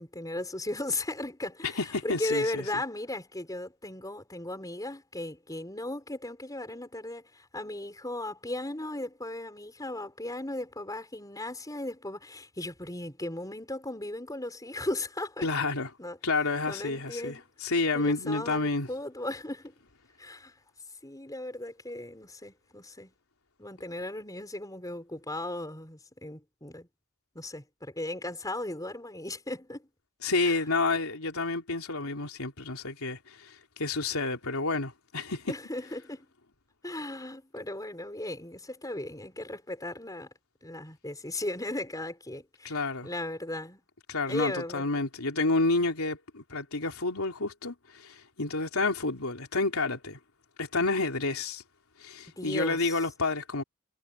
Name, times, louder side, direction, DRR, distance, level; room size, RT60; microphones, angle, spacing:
voice 1, 0.0-15.5 16.0-16.2 16.7-17.4 17.9-19.8 20.2-20.5 21.0-23.1 23.6-26.9 27.4-29.9 30.4-30.6 35.5-36.3 36.8-40.3 40.6-43.8 44.3-44.9 52.4-53.0, left 1 dB, 15° left, 5.4 m, -36 dB
voice 2, 1.8-2.6 15.4-15.9 16.2-18.9 30.2-35.5 42.6-43.1 44.1-50.2 50.6-51.6 52.0-53.6, left 3 dB, 80° left, 3.4 m, -29 dB
head